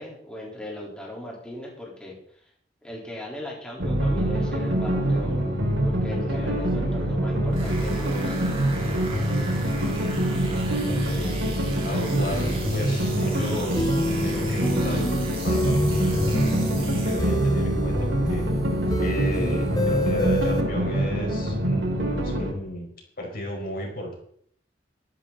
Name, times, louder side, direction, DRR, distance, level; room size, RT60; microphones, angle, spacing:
voice 1, 0.0-2.2 2.8-5.5 5.8-8.4, left 1 dB, 5° left, -3 dB, 3.7 m, -38 dB
sound 1, 3.8-22.5, right 1 dB, 90° right, 5.1 m, -25 dB
voice 2, 6.3-7.0 8.8-11.4 11.8-15.1 15.4-16.5 16.8-18.5 19.0-22.9 23.2-24.2, equal, 50° left, 1 dB, 4.9 m, -35 dB
sound 2, 7.5-17.7, right 3 dB, 30° right, 3.6 m, -39 dB
sound 3, 13.7-20.6, left 1 dB, 20° left, 1.7 m, -27 dB
15.0 x 12.5 x 4.0 m, 0.63 s
head